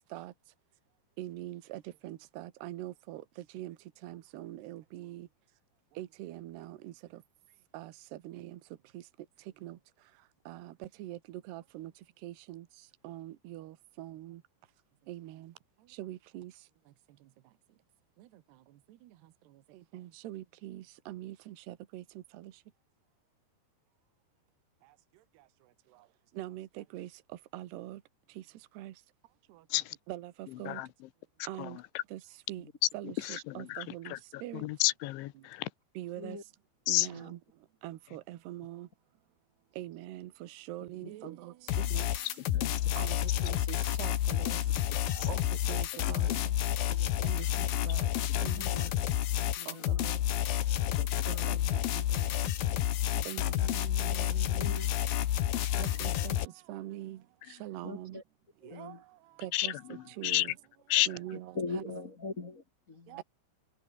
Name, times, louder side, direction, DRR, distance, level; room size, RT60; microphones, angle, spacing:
voice 1, 1.2-3.2 3.5-3.7 4.0-5.3 6.0-6.9 7.7-7.9 8.3-8.5 9.6-9.7 10.5-10.7 11.0-11.2 11.5-11.9 12.2-12.6 13.0-13.7 14.0-14.4 15.1-15.4 16.0-16.5 19.9-22.0 26.4-26.7 26.9-27.1 27.5-28.0 28.8-28.9 30.1-30.3 30.6-30.8 31.5-31.8 32.1-32.2 32.5-32.6 32.9-34.1 34.4-34.6 36.0-36.4 36.9-37.4 37.8-38.9 39.8-40.3 40.7-41.5 41.9-42.0 43.0-43.2 43.4-44.6 45.2-45.4 45.7-46.3 47.2-48.0 48.4-48.6 49.7-50.1 51.3-51.4 52.4-52.5 53.3-54.9 55.8-56.4 56.7-57.2 57.6-58.2 58.8-58.9 59.4-59.7 60.2-60.5 61.1-61.8 63.1-63.2, right 15 dB, 70° right, 3.3 m, -42 dB
voice 2, 33.1-35.7 36.9-37.1 42.5-42.9 45.2-45.3 46.3-46.4 51.0-51.1 59.5-60.5 60.9-61.1, left 17 dB, 90° left, 3.4 m, -32 dB
sound 1, 41.7-56.5, left 12 dB, 65° left, 2.8 m, -30 dB
voice 3, 48.5-48.9 49.4-50.1 51.3-52.3 53.1-53.5 54.2-54.9 55.9-56.2 57.8-58.2 58.6-59.0 60.9-61.0 61.5-63.2, left 3 dB, 45° left, 1.0 m, -43 dB
omnidirectional pair, 5.3 m